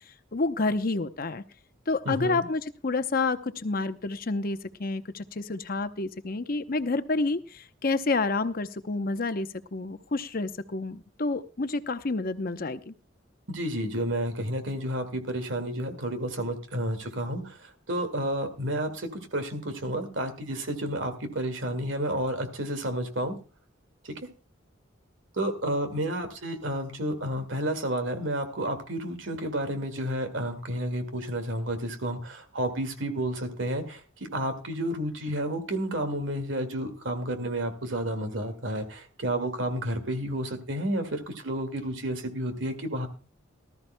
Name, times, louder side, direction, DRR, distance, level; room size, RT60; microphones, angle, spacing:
voice 1, 0.3-1.4 1.9-12.9, left 3 dB, 45° left, 10 dB, 0.8 m, -29 dB
voice 2, 2.1-2.5 13.5-23.4 24.0-24.2 25.3-34.0 34.3-43.1, right 1 dB, 70° right, 7 dB, 2.1 m, -31 dB
19.0 x 13.0 x 2.2 m, 0.34 s
head